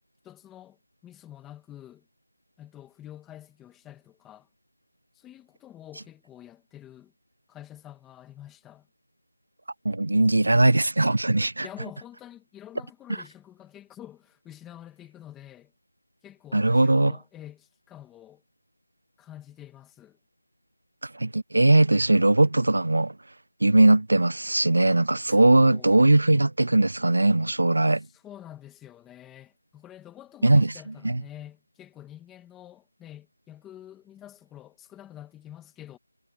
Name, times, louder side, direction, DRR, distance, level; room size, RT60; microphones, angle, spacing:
voice 1, 0.2-2.1 2.6-4.5 5.1-7.1 7.5-8.9 11.6-15.7 16.2-18.4 19.2-20.2 25.3-26.0 28.0-36.0, left 12 dB, 5° left, 1.6 m, -47 dB
voice 2, 9.9-11.7 16.5-17.1 21.1-23.1 23.6-28.0 30.4-30.7 31.0-31.2, right 2 dB, 70° right, 0.4 m, -20 dB
figure-of-eight pair, 175°, 0 cm